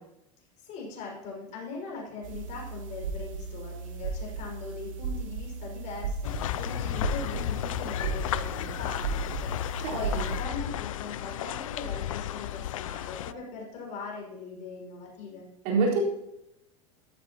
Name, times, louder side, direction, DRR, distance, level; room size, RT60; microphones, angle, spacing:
voice 1, 0.6-15.5, left 4 dB, 45° left, 0 dB, 5.7 m, -40 dB
sound 1, 2.2-10.4, right 4 dB, 75° right, 1.5 m, -35 dB
sound 2, 6.2-13.3, left 12 dB, 75° left, 0.5 m, -33 dB
voice 2, 9.8-10.3 15.6-16.1, right 3 dB, 55° right, -3 dB, 4.4 m, -26 dB
14.0 x 13.0 x 3.0 m, 0.82 s
hypercardioid pair, 90°, 17 cm